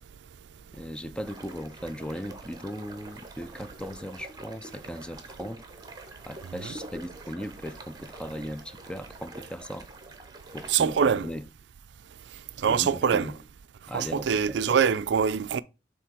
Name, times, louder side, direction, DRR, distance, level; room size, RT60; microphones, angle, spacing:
voice 1, 0.7-5.6 6.3-9.9 10.5-11.5 12.6-13.4 13.9-14.8, equal, 5° left, 0.3 m, -38 dB
sound 1, 1.2-10.9, right 2 dB, 20° right, 0.9 m, -46 dB
voice 2, 10.7-11.3 12.6-13.3 13.9-15.6, right 7 dB, 70° right, 0.4 m, -24 dB
5.9 x 3.8 x 4.4 m
head